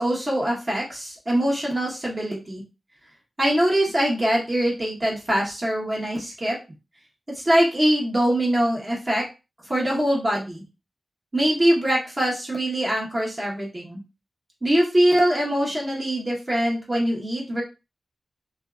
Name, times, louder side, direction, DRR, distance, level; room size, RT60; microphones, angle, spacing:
voice 1, 0.0-2.6 3.4-6.6 7.3-9.2 9.7-10.6 11.3-14.0 14.6-17.6, right 1 dB, 30° right, -3 dB, 1.1 m, -23 dB
2.7 x 2.3 x 2.4 m, 0.28 s
wide cardioid pair, 90°, 0 cm